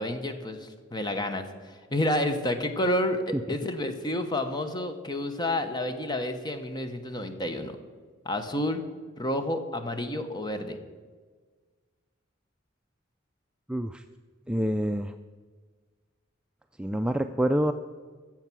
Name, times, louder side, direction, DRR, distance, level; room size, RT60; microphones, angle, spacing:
voice 1, 0.0-1.4 1.9-7.8 8.2-8.8 9.2-10.8, left 1 dB, 20° left, 8 dB, 1.0 m, -29 dB
voice 2, 13.7-14.0 14.5-15.1 16.8-17.7, equal, 5° right, 7 dB, 0.3 m, -26 dB
14.5 x 7.4 x 6.1 m, 1.5 s
head